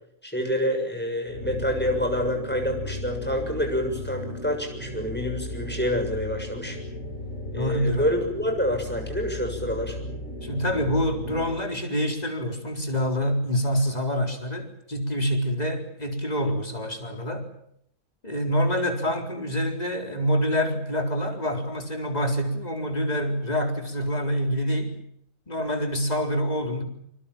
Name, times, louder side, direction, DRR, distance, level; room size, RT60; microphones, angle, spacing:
voice 1, 0.2-6.8 7.5-10.0, equal, 5° left, 4 dB, 6.8 m, -27 dB
sound 1, 1.3-11.7, left 1 dB, 85° left, 5.6 m, -36 dB
voice 2, 7.6-8.1 10.4-17.5 18.2-25.0 25.5-26.8, equal, 30° left, 4 dB, 4.3 m, -26 dB
27.5 x 24.5 x 7.4 m, 0.71 s
omnidirectional pair, 1.3 m